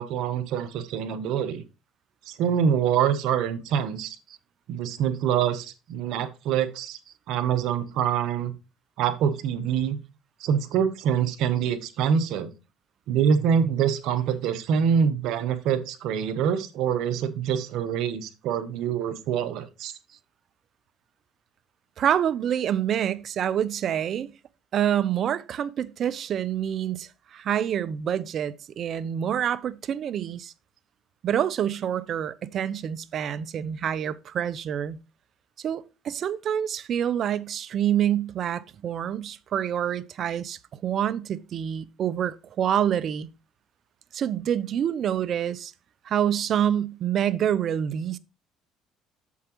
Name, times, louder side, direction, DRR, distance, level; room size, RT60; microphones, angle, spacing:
voice 1, 0.0-1.6 2.3-4.2 4.7-7.0 7.3-8.5 9.0-10.0 10.4-12.5 13.1-19.9, right 8 dB, 70° right, 1.0 m, -25 dB
voice 2, 22.0-24.3 24.7-30.5 31.2-35.0 35.6-43.3 44.1-45.7 46.1-48.2, right 9 dB, 50° right, 0.6 m, -27 dB
8.4 x 7.1 x 3.0 m
supercardioid pair, 95°, 0 cm